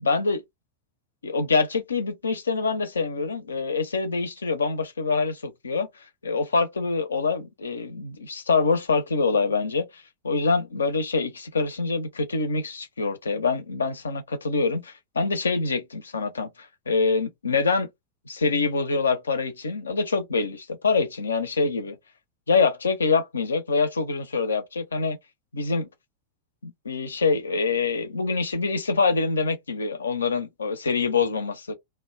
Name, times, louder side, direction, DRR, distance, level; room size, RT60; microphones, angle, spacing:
voice 1, 0.0-0.4 1.2-5.9 6.2-9.9 10.2-17.9 18.3-22.0 22.5-25.2 25.5-25.9 26.6-31.7, left 4 dB, 75° left, 0.5 m, -25 dB
2.1 x 2.1 x 3.1 m
figure-of-eight pair, 90°, 0 cm